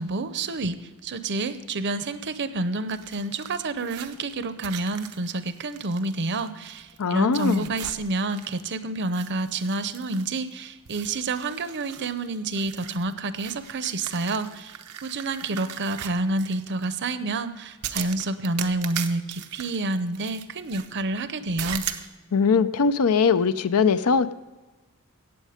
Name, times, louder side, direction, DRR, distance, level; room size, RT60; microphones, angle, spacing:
voice 1, 0.0-21.8, right 2 dB, 50° right, 12 dB, 0.7 m, -29 dB
sound 1, 2.9-7.0 7.3-8.7 9.0-10.5 10.9-16.9 17.8-20.9 21.6-22.1, right 10 dB, 90° right, 0.8 m, -39 dB
voice 2, 7.0-7.7 22.3-24.3, left 5 dB, 75° left, 13 dB, 0.6 m, -21 dB
17.5 x 7.4 x 5.0 m, 1.2 s
head